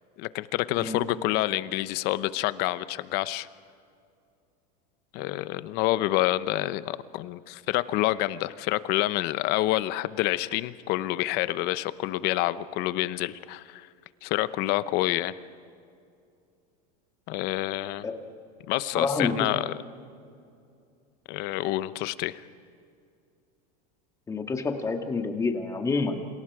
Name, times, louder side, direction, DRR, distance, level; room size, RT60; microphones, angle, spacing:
voice 1, 0.2-3.5 5.1-13.9 14.2-15.3 17.3-18.1 18.7-19.7 21.3-22.4, left 16 dB, 50° left, 15 dB, 0.9 m, -28 dB
voice 2, 18.9-19.4 24.3-26.3, left 4 dB, 15° left, 4 dB, 2.0 m, -28 dB
28.5 x 27.0 x 4.9 m, 2.4 s
supercardioid pair, 145°, 21 cm